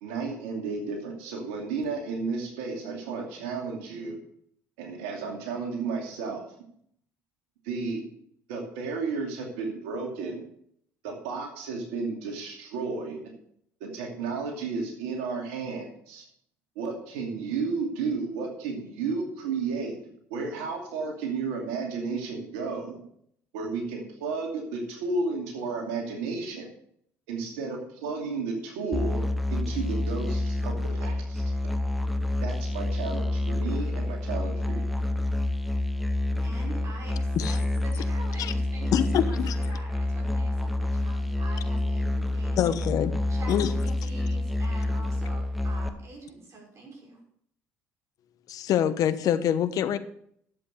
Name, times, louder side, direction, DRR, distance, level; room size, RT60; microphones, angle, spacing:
voice 1, 0.0-4.2 4.8-6.4 7.6-8.1 8.5-10.4 11.0-13.2 13.8-16.2 16.8-20.0 20.3-23.0 23.5-26.7 27.3-29.2 29.5-31.4 32.4-34.9, right 4 dB, 85° right, 2 dB, 2.6 m, -32 dB
Musical instrument, 28.9-45.9, left 1 dB, ahead, 1.3 m, -28 dB
voice 2, 36.4-42.8 43.3-47.2, right 2 dB, 45° right, -1 dB, 5.7 m, -45 dB
voice 3, 38.9-39.6 42.6-43.1 43.5-43.7 48.5-50.0, left 10 dB, 60° left, 13 dB, 1.0 m, -25 dB
11.0 x 7.8 x 6.6 m, 0.67 s
supercardioid pair, 75°, 7 cm